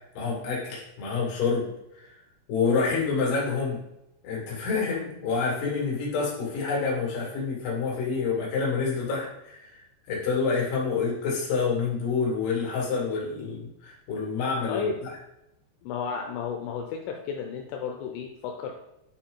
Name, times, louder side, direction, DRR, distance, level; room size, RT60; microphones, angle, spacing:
voice 1, 0.1-1.7 2.0-2.1 2.5-3.8 4.2-9.8 10.1-14.9, left 5 dB, 50° left, -4 dB, 2.9 m, -27 dB
voice 2, 14.7-15.0 15.8-18.8, left 6 dB, 80° left, 2 dB, 3.1 m, -33 dB
8.9 x 4.4 x 3.8 m, 0.86 s
omnidirectional pair, 5.9 m